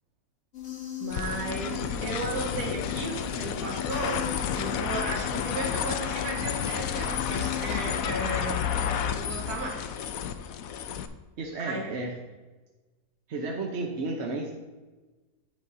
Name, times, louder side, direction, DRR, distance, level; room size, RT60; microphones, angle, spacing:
sound 1, 0.5-8.0, left 9 dB, 45° left, 1.6 m, -40 dB
voice 1, 1.0-9.8 11.6-11.9, right 2 dB, 75° right, -3 dB, 2.0 m, -35 dB
sound 2, 1.1-11.1, left 8 dB, 70° left, 1.0 m, -31 dB
voice 2, 1.6-2.0 11.4-12.1 13.3-14.5, right 2 dB, 50° right, 0 dB, 1.0 m, -33 dB
9.7 x 9.2 x 2.7 m, 1.2 s
omnidirectional pair, 1.6 m